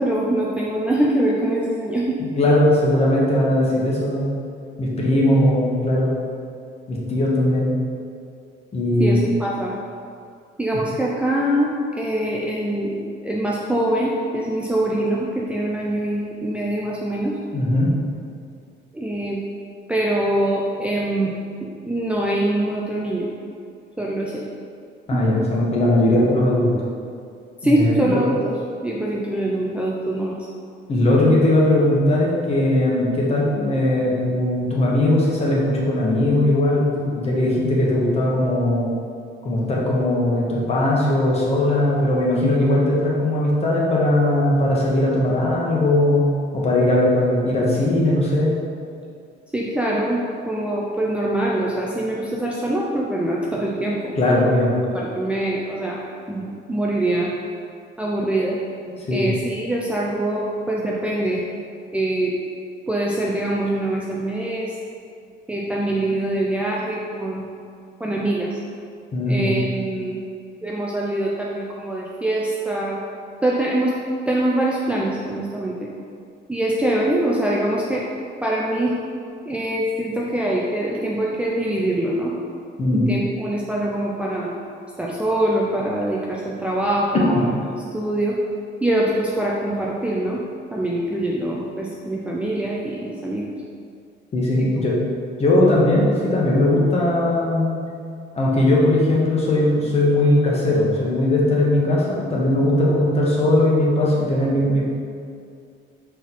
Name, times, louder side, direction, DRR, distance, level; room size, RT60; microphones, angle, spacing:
voice 1, 0.0-2.2 9.0-9.7 10.6-13.0 13.2-17.4 18.9-19.4 19.9-21.3 21.6-23.3 24.0-24.4 25.1-25.2 27.6-28.5 28.8-30.4 49.5-54.1 54.9-56.0 56.3-57.3 58.0-58.6 59.1-61.4 61.9-62.3 62.9-64.7 65.5-67.4 68.0-68.6 69.3-70.2 70.6-73.0 73.4-73.9 74.3-75.7 76.5-78.0 78.4-78.9 79.5-82.3 82.9-84.5 85.0-87.5 87.9-88.4 88.8-90.4 90.7-93.5 94.6-94.7, right 1 dB, 5° right, -5 dB, 0.5 m, -23 dB
voice 2, 2.4-4.4 4.8-6.1 6.9-7.7 8.7-9.3 17.5-17.9 25.1-26.7 27.6-28.2 30.9-38.9 39.4-46.3 46.5-48.6 54.1-54.7 59.1-59.3 69.1-69.5 82.8-83.1 94.3-94.9 95.4-97.7 98.3-104.9, left 1 dB, 35° left, -4 dB, 1.3 m, -19 dB
6.1 x 4.5 x 4.1 m, 2.4 s
cardioid pair, 160°, 19 cm